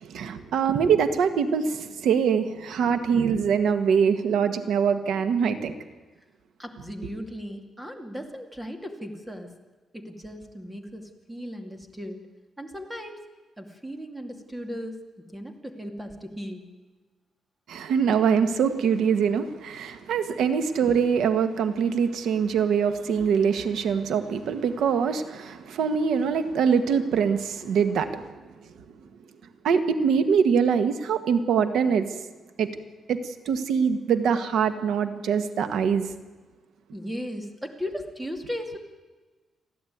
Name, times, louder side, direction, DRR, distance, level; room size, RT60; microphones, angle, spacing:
voice 1, 0.0-5.7 17.7-28.3 29.6-32.1 32.6-32.7 33.1-33.2 33.4-36.1, right 6 dB, 90° right, 10 dB, 1.6 m, -23 dB
voice 2, 6.6-9.6 9.9-12.3 12.6-13.2 13.6-15.0 15.3-16.7 36.9-38.8, equal, 5° right, 5 dB, 2.4 m, -37 dB
29.5 x 11.5 x 9.4 m, 1.3 s
cardioid pair, 135°, 0 cm